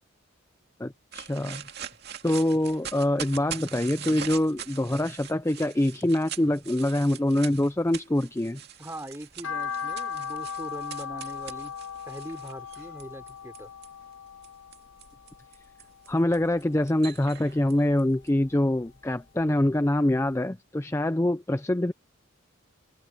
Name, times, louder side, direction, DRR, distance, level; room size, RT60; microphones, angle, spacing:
voice 1, 0.8-1.6 2.2-8.6 16.1-21.9, left 1 dB, 10° left, 0.4 m, -25 dB
sound 1, 1.1-13.9 14.4-18.3, right 9 dB, 50° right, 2.5 m, -42 dB
voice 2, 8.8-11.8 12.1-13.7, right 1 dB, 10° right, 5.6 m, -41 dB
sound 2, 9.4-15.7 16.1-17.3 17.6-19.0 19.4-19.5 20.0-20.1 20.3-20.4, left 6 dB, 65° left, 2.3 m, -37 dB
head